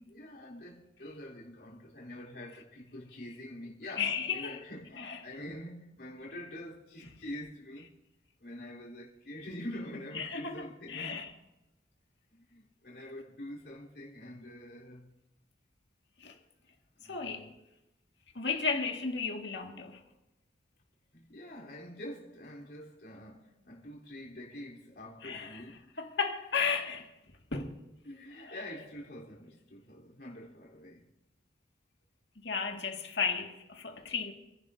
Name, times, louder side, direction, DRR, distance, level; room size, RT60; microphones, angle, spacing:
voice 1, 0.1-8.0 8.4-11.3 12.3-15.1 17.0-17.5 21.1-25.9 28.0-31.1, left 1 dB, 60° left, 3.7 m, -45 dB
voice 2, 4.0-4.6 5.0-5.2 10.1-11.3 16.2-16.4 17.1-17.5 18.3-20.0 25.2-25.6 26.0-27.1 27.5-27.8 28.4-28.6 32.4-34.3, left 5 dB, 75° left, 2.0 m, -34 dB
30.0 x 11.0 x 2.7 m
head